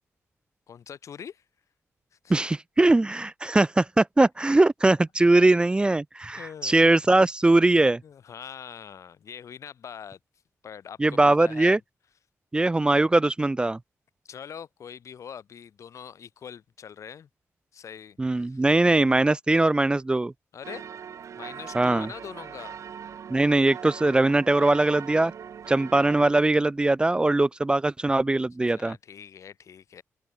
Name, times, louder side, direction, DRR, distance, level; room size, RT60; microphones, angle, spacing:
voice 1, 0.7-1.4 2.2-2.3 5.3-5.5 6.4-6.8 8.0-10.2 10.6-11.8 14.3-17.3 17.7-18.6 20.5-20.8 21.4-22.8 28.7-30.0, left 8 dB, 70° left, 3.5 m, -43 dB
voice 2, 2.3-8.0 11.0-11.8 12.5-13.8 18.2-20.3 21.7-22.1 23.3-25.3 25.7-29.0, right 2 dB, 15° right, 0.6 m, -21 dB
sound 1, 20.6-26.3, right 8 dB, 70° right, 6.2 m, -40 dB
open air
cardioid pair, 105°, 5 cm